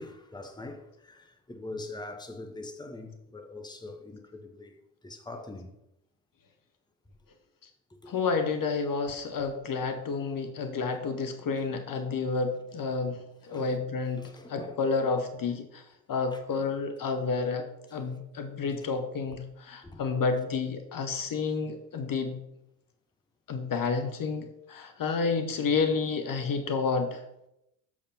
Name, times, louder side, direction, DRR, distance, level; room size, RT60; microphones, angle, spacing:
voice 1, 0.0-4.7 5.0-5.7 8.0-8.1 13.5-13.8 14.2-14.8 16.3-16.7 19.8-20.0 21.9-22.0, left 2 dB, 10° left, 1.2 m, -43 dB
voice 2, 8.1-15.8 16.1-22.4 23.5-27.2, left 4 dB, 45° left, 1.1 m, -30 dB
7.2 x 4.8 x 5.6 m
hypercardioid pair, 55°, 47 cm